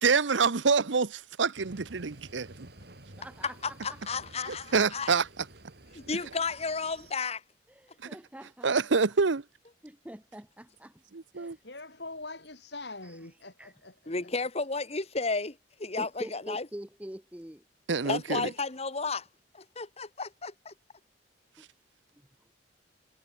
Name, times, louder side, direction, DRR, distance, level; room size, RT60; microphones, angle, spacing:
voice 1, 0.0-2.7 4.5-5.4 8.6-9.4 11.1-11.6 17.9-18.5, right 5 dB, 80° right, 0.8 m, -26 dB
sound 1, 1.6-7.1, right 1 dB, 60° right, 4.8 m, -52 dB
voice 2, 3.1-4.2 7.7-8.7 9.8-11.0 11.3-11.6 13.0-13.2 13.6-13.7 16.0-17.6 21.6-21.7, right 1 dB, 10° right, 0.9 m, -45 dB
voice 3, 3.8-5.1 5.9-7.4 14.1-16.7 18.0-19.2 19.5-20.7, left 4 dB, 35° left, 1.5 m, -33 dB
voice 4, 11.6-14.3, left 2 dB, 65° left, 7.4 m, -44 dB
head